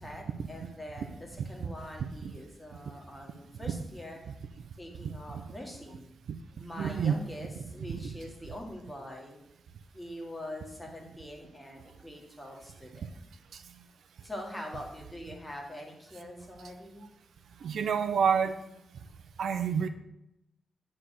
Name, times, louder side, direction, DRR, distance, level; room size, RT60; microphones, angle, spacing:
voice 1, 0.0-4.2 4.8-6.1 6.6-9.4 9.9-13.1 14.2-17.1, left 1 dB, 10° left, 0 dB, 1.8 m, -44 dB
voice 2, 6.8-7.3 8.0-8.1 17.6-18.6 19.4-19.9, right 7 dB, 90° right, 9 dB, 0.7 m, -27 dB
9.9 x 4.3 x 6.6 m, 0.85 s
wide cardioid pair, 160°, 0 cm